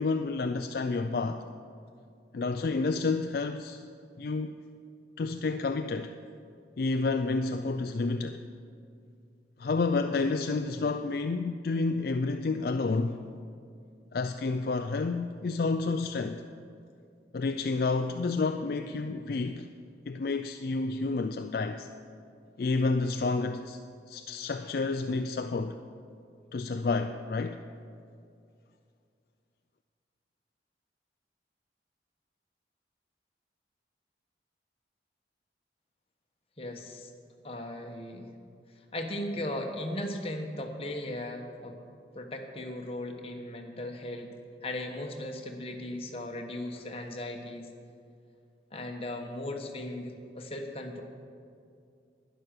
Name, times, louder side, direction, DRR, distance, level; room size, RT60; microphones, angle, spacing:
voice 1, 0.0-1.4 2.3-3.8 4.2-4.5 5.2-6.1 6.8-8.4 9.6-13.3 14.1-16.4 17.3-19.7 20.1-21.9 22.6-23.8 24.1-25.8 26.5-27.6, left 3 dB, 55° left, 7 dB, 0.4 m, -30 dB
voice 2, 36.6-37.1 37.4-38.3 38.9-41.8 42.1-44.3 44.6-47.7 48.7-51.0, left 1 dB, 35° left, 3 dB, 1.2 m, -37 dB
11.0 x 10.0 x 6.6 m, 2.4 s
head